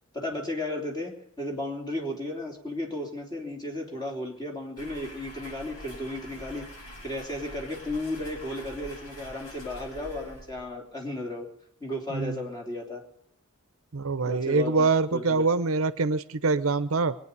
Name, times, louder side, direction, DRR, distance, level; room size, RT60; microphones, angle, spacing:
voice 1, 0.1-11.5 11.8-13.0 14.2-15.4, left 1 dB, 20° left, 0 dB, 3.1 m, -34 dB
sound 1, 4.8-10.8, left 1 dB, 75° left, 6.4 m, -45 dB
voice 2, 13.9-17.1, right 4 dB, 65° right, 14 dB, 0.7 m, -24 dB
22.5 x 9.1 x 6.7 m, 0.72 s
head